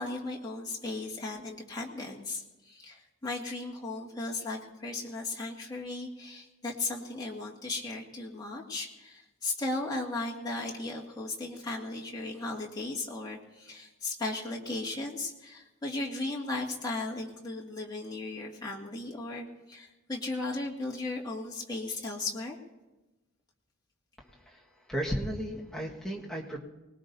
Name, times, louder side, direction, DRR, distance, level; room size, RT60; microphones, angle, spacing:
voice 1, 0.0-22.6, left 2 dB, 20° left, -3 dB, 2.1 m, -36 dB
voice 2, 24.3-24.6 24.9-26.6, equal, 5° left, -3 dB, 1.6 m, -34 dB
23.5 x 19.5 x 2.7 m, 1.1 s
head